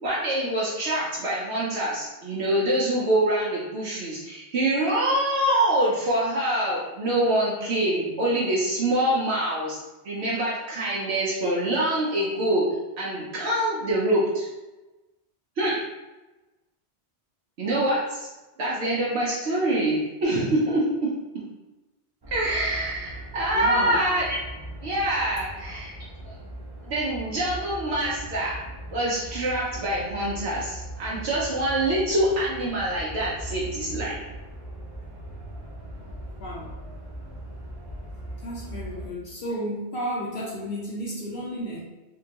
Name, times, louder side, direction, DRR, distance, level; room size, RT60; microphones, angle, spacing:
voice 1, 0.0-9.8 10.0-12.6 13.0-14.5 15.6-15.8 17.6-18.3 18.6-21.1 22.3-24.4 24.8-25.9 26.2-26.3 26.8-28.6 28.9-34.2, right 1 dB, 75° right, -6 dB, 0.9 m, -25 dB
sound 1, 22.2-39.1, right 1 dB, 35° right, 0.4 m, -39 dB
voice 2, 23.5-24.0 36.4-36.8 38.4-41.8, equal, 65° left, -4 dB, 0.8 m, -32 dB
3.7 x 2.2 x 2.8 m, 1.1 s
omnidirectional pair, 1.1 m